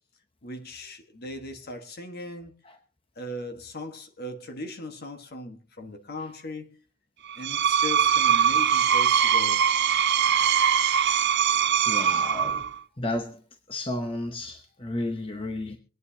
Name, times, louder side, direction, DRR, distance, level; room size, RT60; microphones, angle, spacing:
voice 1, 0.4-2.5 3.2-6.7 7.4-9.6, left 1 dB, 45° left, 1.4 m, -38 dB
Screech, 7.3-12.8, right 8 dB, 50° right, 0.7 m, -22 dB
voice 2, 11.9-12.6 13.0-13.4 13.7-15.8, left 1 dB, 25° left, 0.9 m, -32 dB
24.5 x 9.3 x 2.8 m
head